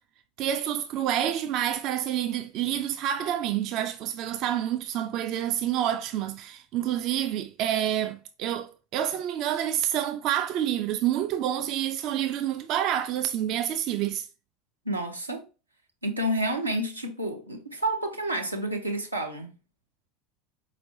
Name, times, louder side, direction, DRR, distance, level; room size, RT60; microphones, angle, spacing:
voice 1, 0.4-14.3, right 11 dB, 45° right, 0.3 m, -28 dB
voice 2, 14.8-15.4 16.0-19.5, right 1 dB, 90° right, 0.6 m, -29 dB
4.4 x 3.1 x 2.6 m
figure-of-eight pair, 75°, 0 cm